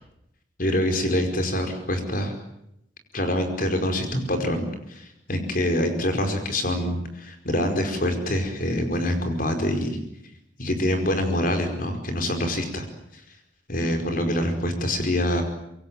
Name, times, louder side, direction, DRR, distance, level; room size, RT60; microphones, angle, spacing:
voice 1, 0.6-2.3 3.1-10.0 10.6-12.8 13.1-13.2 13.7-15.4, left 1 dB, 50° left, 6 dB, 5.0 m, -25 dB
25.5 x 22.5 x 9.1 m, 0.79 s
head